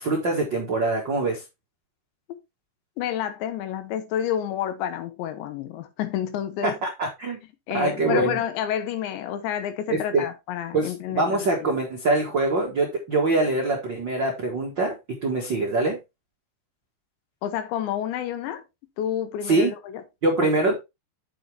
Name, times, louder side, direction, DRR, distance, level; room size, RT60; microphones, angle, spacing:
voice 1, 0.0-1.4 6.6-7.4 7.7-8.4 9.9-10.2 10.7-16.0 19.4-19.7 20.2-20.8, right 2 dB, 90° right, 1.0 m, -24 dB
voice 2, 3.0-6.8 7.7-11.8 17.4-18.6 19.0-20.0, left 10 dB, 85° left, 3.4 m, -29 dB
8.1 x 6.7 x 3.4 m
omnidirectional pair, 5.1 m